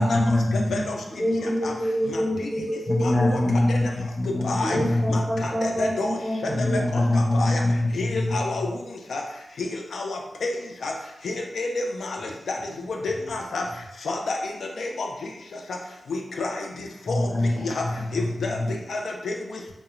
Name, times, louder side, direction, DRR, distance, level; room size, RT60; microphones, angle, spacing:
voice 1, 0.0-0.9 2.9-5.2 6.5-8.4 17.1-17.6 18.6-18.7, left 1 dB, 25° left, -1 dB, 0.6 m, -23 dB
voice 2, 0.5-1.0 1.4-1.7 2.1-2.5 3.0-3.4 3.7-3.8 4.4-4.8 5.1-6.2 6.4-6.5 6.9-7.6 7.9-8.8 9.1-9.2 9.6-10.6 10.8-10.9 11.2-12.6 12.9-13.6 14.0-15.1 16.1-17.3 17.6-17.8 18.1-18.6 18.9-19.6, left 3 dB, 90° left, 1 dB, 0.3 m, -30 dB
voice 3, 1.1-3.5 4.6-6.9, equal, 30° right, -4 dB, 0.8 m, -27 dB
2.3 x 2.0 x 2.9 m, 0.89 s
cardioid pair, 70°, 0 cm